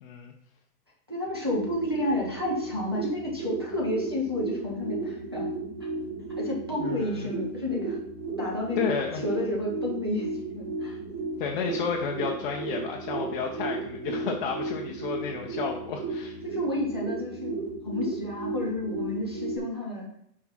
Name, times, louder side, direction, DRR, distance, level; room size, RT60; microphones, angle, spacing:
voice 1, 0.0-0.3 6.8-7.3 8.8-9.2 11.4-16.4, left 6 dB, 35° left, 0 dB, 0.6 m, -32 dB
voice 2, 1.1-5.5 5.8-5.9 6.4-8.0 8.4-8.9 9.2-10.3 10.5-11.0 16.4-17.5 17.8-20.1, left 1 dB, 20° right, -4 dB, 0.3 m, -31 dB
sound 1, 1.2-19.6, right 3 dB, 55° right, 1.5 m, -34 dB
4.7 x 4.6 x 5.5 m, 0.72 s
hypercardioid pair, 150°, 49 cm